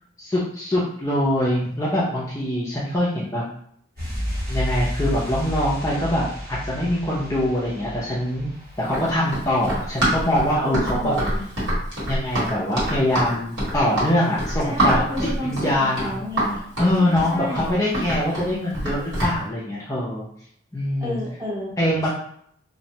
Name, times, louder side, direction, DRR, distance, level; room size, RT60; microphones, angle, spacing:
voice 1, 0.2-3.4 4.5-8.5 8.8-11.2 12.1-15.0 15.4-16.1 16.8-20.3 20.7-21.2 21.8-22.1, left 1 dB, 15° left, -7 dB, 0.4 m, -23 dB
sound 1, 4.0-10.5 10.7-10.9, equal, 50° right, 0.8 m, -32 dB
Run, 8.8-19.4, right 1 dB, 80° right, 1.4 m, -25 dB
voice 2, 10.6-11.5 14.6-16.6 17.0-17.7 21.0-21.8, left 1 dB, 15° right, -6 dB, 0.8 m, -31 dB
2.5 x 2.1 x 2.7 m, 0.65 s
head